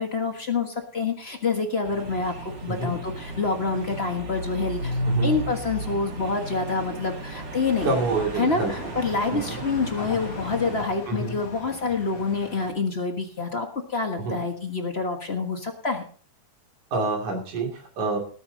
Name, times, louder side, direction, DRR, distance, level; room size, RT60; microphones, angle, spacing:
voice 1, 0.0-8.0 8.4-16.0, left 4 dB, 40° left, 4 dB, 0.9 m, -27 dB
sound 1, 1.8-10.9, right 1 dB, 35° right, 2.9 m, -33 dB
sound 2, 7.7-12.7, left 4 dB, 60° left, 2.9 m, -40 dB
voice 2, 7.8-8.7 9.3-9.6 11.1-11.4 14.2-14.4 16.9-18.2, right 3 dB, 70° right, -1 dB, 4.1 m, -27 dB
19.0 x 8.9 x 4.0 m, 0.43 s
omnidirectional pair, 3.6 m